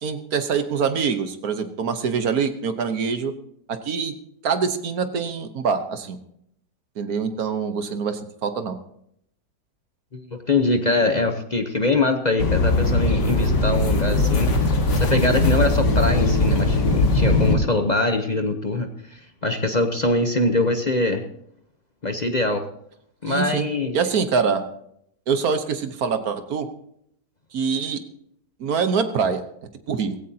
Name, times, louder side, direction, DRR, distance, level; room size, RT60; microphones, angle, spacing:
voice 1, 0.0-3.3 3.7-4.1 4.4-6.2 7.0-8.8 23.3-23.7 23.9-24.6 25.3-26.7 27.5-28.0 28.6-29.4 29.9-30.2, right 6 dB, 60° right, 9 dB, 1.5 m, -24 dB
voice 2, 10.1-14.5 14.9-21.2 22.0-22.7 23.2-23.9, left 2 dB, 35° left, 6 dB, 0.7 m, -23 dB
sound 1, 12.4-17.5, left 2 dB, 75° left, 2.4 m, -20 dB
17.5 x 16.5 x 2.8 m, 0.71 s
omnidirectional pair, 1.9 m